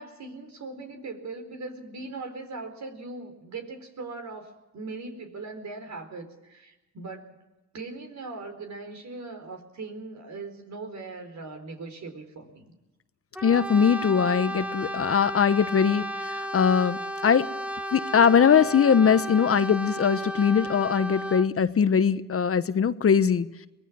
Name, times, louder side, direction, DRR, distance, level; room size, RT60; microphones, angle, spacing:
voice 1, 0.0-7.4 7.7-12.7, right 3 dB, 60° right, 5 dB, 4.5 m, -40 dB
Brass instrument, 13.3-21.5, equal, 5° right, 1.5 m, -33 dB
voice 2, 13.4-17.5 17.9-23.5, left 7 dB, 45° left, 13 dB, 1.1 m, -21 dB
24.0 x 19.5 x 6.2 m, 1.0 s
cardioid pair, 70°, 32 cm